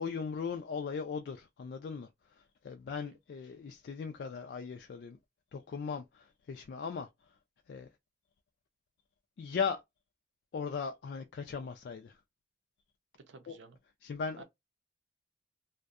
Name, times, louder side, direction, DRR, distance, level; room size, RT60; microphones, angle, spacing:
voice 1, 0.0-5.2 5.5-7.4 7.7-7.9 9.4-9.8 10.5-12.2 13.5-13.6 14.0-14.4, left 5 dB, 65° left, 0.3 m, -38 dB
voice 2, 13.1-13.8 14.4-14.5, right 4 dB, 85° right, 0.6 m, -53 dB
2.6 x 2.1 x 2.4 m
head